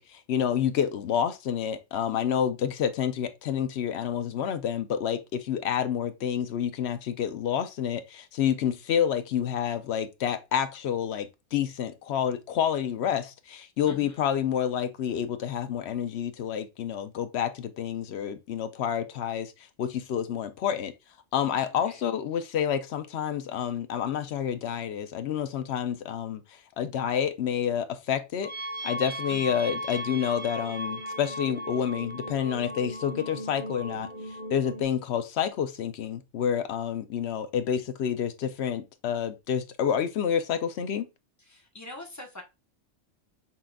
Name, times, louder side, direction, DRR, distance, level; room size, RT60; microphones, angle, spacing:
voice 1, 0.0-19.5 19.8-20.9 21.3-28.5 28.8-34.1 34.5-41.1, left 8 dB, 65° left, 0.7 m, -29 dB
voice 2, 13.9-14.2 21.7-22.0 29.3-29.6 41.4-42.4, left 1 dB, 15° left, 0.8 m, -45 dB
sound 1, 28.4-34.8, right 1 dB, 40° right, 1.2 m, -37 dB
5.8 x 3.7 x 2.2 m
omnidirectional pair, 1.4 m